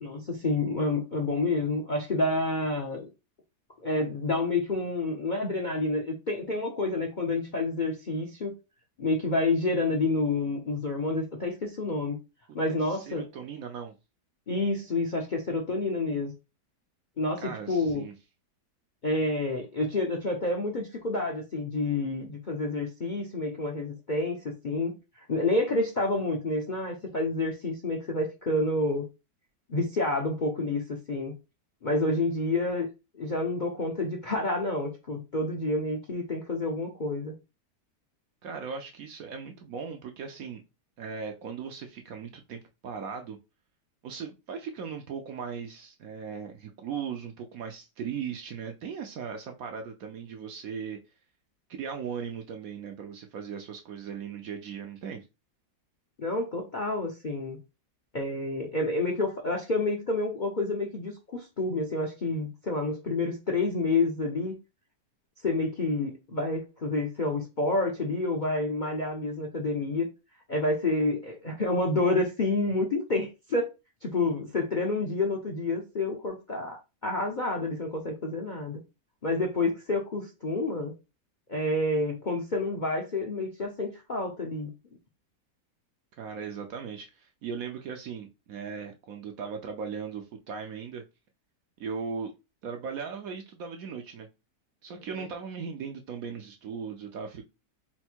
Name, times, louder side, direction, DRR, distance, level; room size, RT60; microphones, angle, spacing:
voice 1, 0.0-3.1 3.8-8.5 9.0-12.2 12.5-13.3 14.5-16.3 17.2-18.0 19.0-29.1 29.7-30.8 31.1-31.3 31.8-32.9 33.1-37.3 56.2-57.6 58.1-64.5 65.4-70.1 70.5-73.7 74.0-78.8 79.2-80.9 81.5-84.7 95.1-95.3, left 2 dB, 45° left, 0.6 m, -29 dB
voice 2, 12.7-14.0 17.4-18.1 38.4-40.6 41.0-43.4 44.0-51.0 51.7-55.2 86.2-91.0 91.8-92.3 92.6-94.3 94.8-97.5, right 6 dB, 65° right, 1.0 m, -38 dB
4.4 x 2.2 x 4.3 m
omnidirectional pair, 1.8 m